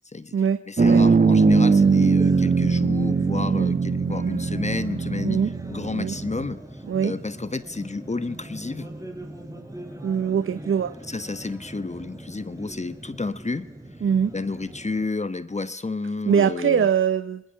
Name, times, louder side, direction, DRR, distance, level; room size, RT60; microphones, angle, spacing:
voice 1, 0.0-0.4 0.7-5.4 5.7-8.9 11.1-13.7 14.3-16.9, left 3 dB, 25° left, 13 dB, 1.1 m, -31 dB
sound 1, 0.8-6.5, right 4 dB, 30° right, 1.1 m, -20 dB
sound 2, 1.6-15.1, right 1 dB, 10° right, 4.1 m, -41 dB
voice 2, 10.0-10.9 14.0-14.3 16.3-17.4, right 7 dB, 45° right, 13 dB, 0.7 m, -22 dB
28.0 x 20.5 x 5.7 m, 0.89 s
cardioid pair, 55°, 29 cm